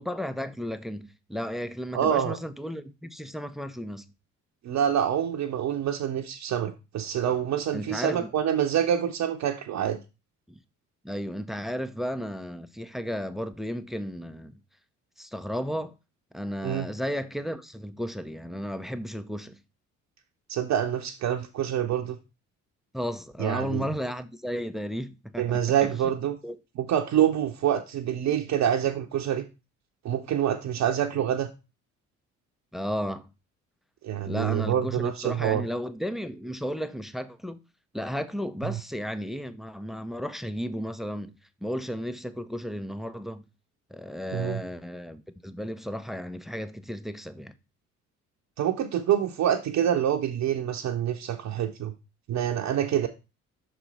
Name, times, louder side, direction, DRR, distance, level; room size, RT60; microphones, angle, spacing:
voice 1, 0.0-4.1 7.7-8.3 11.0-14.6 15.2-15.9 16.3-19.6 22.9-26.1 26.4-26.6 32.7-33.3 34.2-37.6 37.9-41.4 41.6-43.4 43.9-47.5, equal, ahead, 0.4 m, -34 dB
voice 2, 1.9-2.4 4.6-10.0 16.6-16.9 20.5-22.2 23.4-23.8 25.4-26.4 26.8-29.4 30.0-31.5 34.0-35.6 38.6-38.8 44.3-44.6 48.6-51.9 52.3-53.1, right 10 dB, 40° right, 0.7 m, -26 dB
6.1 x 4.2 x 4.0 m
figure-of-eight pair, 45°, 41 cm